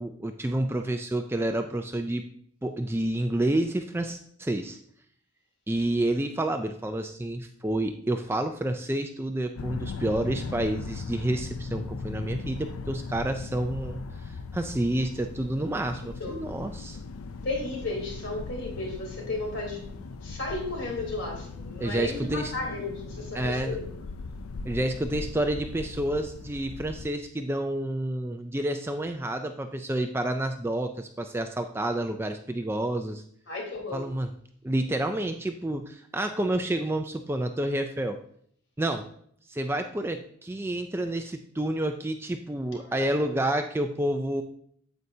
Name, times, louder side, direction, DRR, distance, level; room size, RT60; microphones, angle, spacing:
voice 1, 0.0-2.2 2.6-4.8 5.7-17.0 21.8-22.5 23.3-23.8 24.7-33.2 33.9-34.3 34.6-38.2 38.8-39.1 39.5-44.4, right 1 dB, 10° right, 6 dB, 0.3 m, -29 dB
sound 1, 9.6-27.1, left 4 dB, 80° left, 0.5 m, -38 dB
voice 2, 17.4-23.8 33.5-34.1 42.8-43.3, left 2 dB, 55° left, -1 dB, 3.5 m, -34 dB
9.5 x 7.9 x 2.7 m, 0.63 s
head